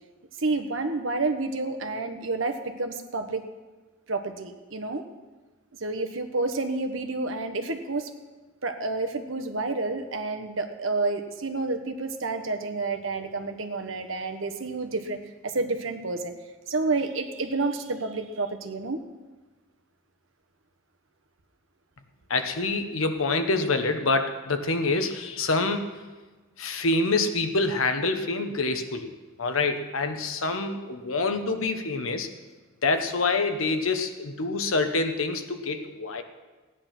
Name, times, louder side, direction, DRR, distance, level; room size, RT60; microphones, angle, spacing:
voice 1, 0.4-3.5 4.1-5.0 5.8-8.1 8.6-15.2 15.4-16.3 16.7-19.0, right 3 dB, 75° right, 7 dB, 1.2 m, -29 dB
voice 2, 22.3-25.9 26.6-29.1 29.4-32.3 32.8-36.2, left 3 dB, 90° left, 7 dB, 1.2 m, -26 dB
15.5 x 9.8 x 6.0 m, 1.3 s
head